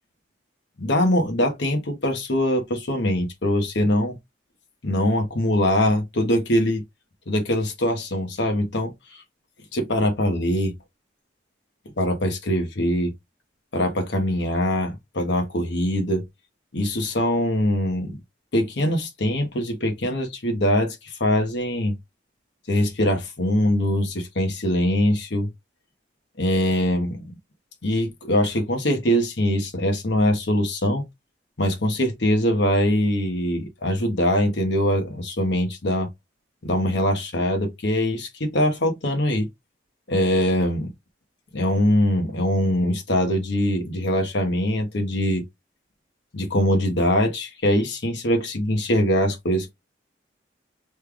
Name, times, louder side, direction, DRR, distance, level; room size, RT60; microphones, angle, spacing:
voice 1, 0.8-4.1 4.8-6.8 7.3-9.2 9.7-10.7 12.0-13.1 13.7-16.2 16.7-18.2 18.5-21.9 22.7-25.5 26.4-27.4 27.8-31.0 31.6-36.1 36.6-39.5 40.1-40.9 41.5-45.4 46.3-49.7, left 1 dB, 65° left, 1.0 m, -22 dB
3.2 x 2.3 x 3.4 m
head